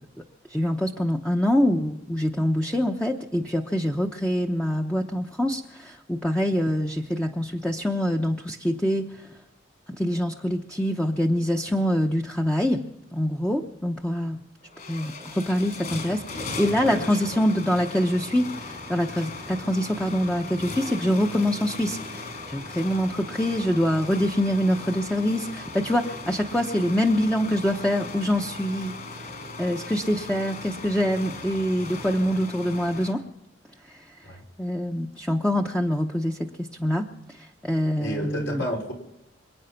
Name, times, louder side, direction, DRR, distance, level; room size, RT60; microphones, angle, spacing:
voice 1, 0.5-9.3 10.0-12.8 13.1-14.4 14.9-28.9 29.6-33.2 33.9-34.0 34.6-37.1 37.3-38.6, equal, 5° left, 2 dB, 0.8 m, -25 dB
sound 1, 14.2-14.3 14.6-33.1, left 3 dB, 50° left, 5.6 m, -38 dB
voice 2, 16.8-17.4 34.2-34.4 38.0-38.9, equal, 70° left, 0 dB, 4.8 m, -32 dB
27.0 x 9.2 x 5.8 m, 0.92 s
head